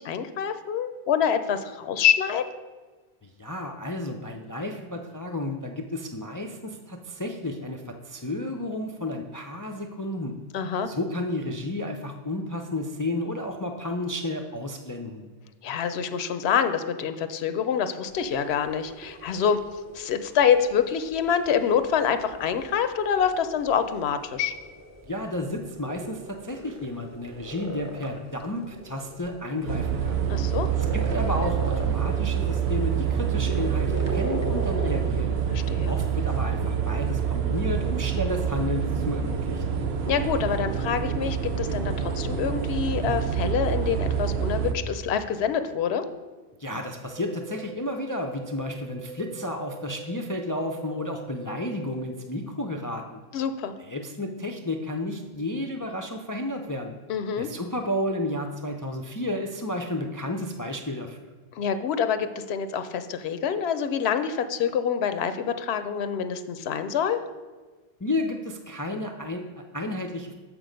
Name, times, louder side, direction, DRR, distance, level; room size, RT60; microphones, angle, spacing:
voice 1, 0.0-2.5 10.5-10.9 15.6-19.6 19.9-24.6 30.3-30.7 35.5-35.9 40.1-46.0 53.3-53.7 57.1-57.5 61.5-67.2, left 7 dB, 85° left, 10 dB, 0.8 m, -26 dB
voice 2, 3.2-10.4 10.9-15.3 25.1-30.2 30.8-35.3 35.9-39.8 46.6-53.2 53.8-57.0 57.4-61.3 68.0-70.3, left 1 dB, 35° left, 3 dB, 0.3 m, -32 dB
sound 1, 18.1-35.8, right 1 dB, 20° right, 0.7 m, -40 dB
sound 2, 29.7-44.7, right 8 dB, 80° right, 0.9 m, -26 dB
sound 3, 47.1-52.1, right 5 dB, 55° right, 0.6 m, -42 dB
7.0 x 6.1 x 5.1 m, 1.3 s
omnidirectional pair, 1.0 m